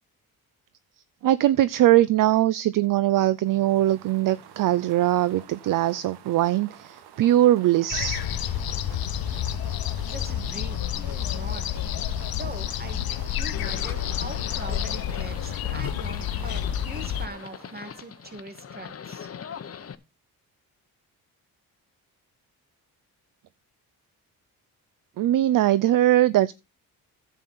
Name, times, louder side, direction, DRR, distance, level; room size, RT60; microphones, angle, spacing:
voice 1, 1.2-8.3 25.2-26.5, right 13 dB, 55° right, 0.5 m, -21 dB
sound 1, 3.2-18.7, right 9 dB, 85° right, 1.3 m, -48 dB
sound 2, 7.9-17.3, left 10 dB, 65° left, 0.9 m, -29 dB
voice 2, 10.1-11.9 12.3-19.3, right 2 dB, 25° right, 2.2 m, -41 dB
Livestock farm animals working animals, 13.5-19.9, left 7 dB, 40° left, 0.9 m, -41 dB
11.0 x 8.3 x 4.1 m
cardioid pair, 80°, 38 cm